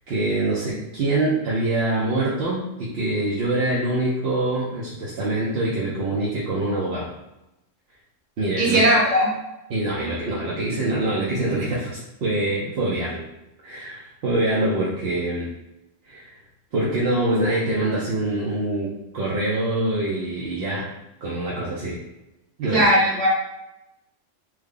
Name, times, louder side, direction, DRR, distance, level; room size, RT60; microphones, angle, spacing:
voice 1, 0.1-7.1 8.4-8.9 9.7-13.2 13.6-15.5 16.1-16.4 16.7-20.9 21.2-22.0 22.6-22.9, right 2 dB, 60° right, -6 dB, 0.8 m, -25 dB
voice 2, 8.6-9.3 22.7-23.3, right 1 dB, 75° right, -6 dB, 1.7 m, -18 dB
3.2 x 2.3 x 3.6 m, 0.93 s
omnidirectional pair, 1.3 m